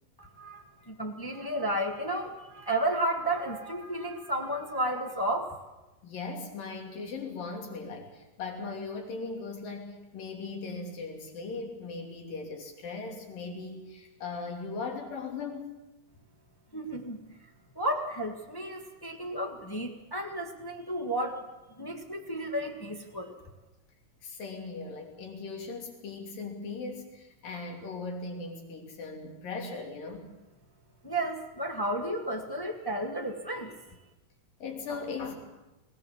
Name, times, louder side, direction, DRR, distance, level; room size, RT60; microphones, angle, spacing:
voice 1, 0.2-5.5 16.7-17.4 17.7-21.4 21.8-23.3 31.0-33.7, right 1 dB, 20° left, 1 dB, 0.5 m, -32 dB
voice 2, 6.0-15.7 24.2-30.3 34.6-35.4, left 4 dB, 85° left, 1 dB, 4.7 m, -38 dB
21.0 x 18.5 x 7.4 m, 1.1 s
omnidirectional pair, 3.9 m